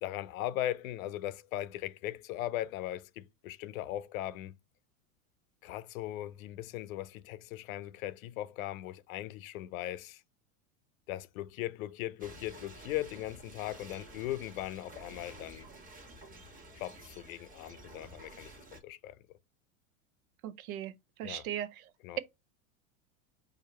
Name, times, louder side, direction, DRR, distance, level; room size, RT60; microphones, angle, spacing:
voice 1, 0.0-4.6 5.6-10.2 11.1-15.7 16.7-19.2 21.2-21.5 22.0-22.2, left 14 dB, 75° left, 0.6 m, -39 dB
sound 1, 12.2-18.8, right 2 dB, 20° right, 1.3 m, -51 dB
voice 2, 20.4-20.9 21.2-21.8, right 11 dB, 80° right, 0.8 m, -38 dB
4.8 x 2.6 x 4.2 m
supercardioid pair, 125°, 42 cm